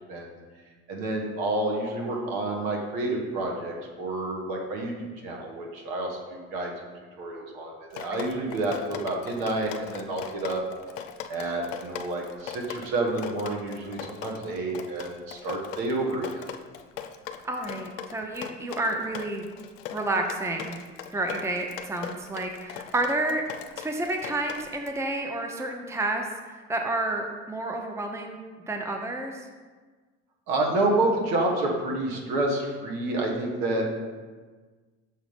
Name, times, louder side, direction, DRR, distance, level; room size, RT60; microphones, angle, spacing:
voice 1, 0.9-6.7 7.2-10.6 11.3-16.4 30.5-33.9, right 2 dB, 65° right, 0 dB, 1.5 m, -29 dB
Drip, 7.9-24.9, left 9 dB, 85° left, 0.5 m, -40 dB
voice 2, 17.4-19.4 19.9-20.8 21.1-23.4 23.7-29.4, right 2 dB, 5° right, 3 dB, 0.7 m, -30 dB
6.4 x 3.9 x 5.0 m, 1.4 s
hypercardioid pair, 60°, 38 cm